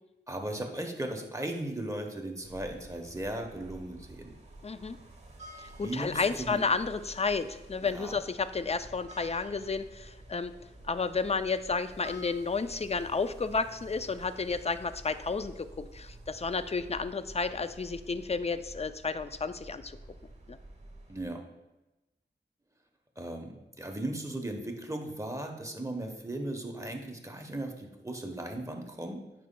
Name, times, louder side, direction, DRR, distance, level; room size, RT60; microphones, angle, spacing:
voice 1, 0.3-4.3 5.8-6.6 7.8-8.2 21.1-21.4 23.2-29.2, right 1 dB, 15° right, 4 dB, 1.0 m, -37 dB
sound 1, 2.4-21.3, right 1 dB, 35° right, 1.3 m, -50 dB
voice 2, 4.6-5.0 5.6-10.5 10.9-20.0 20.5-20.6, left 4 dB, 35° left, 12 dB, 0.4 m, -32 dB
9.2 x 5.0 x 2.2 m, 0.99 s
cardioid pair, 45°, 19 cm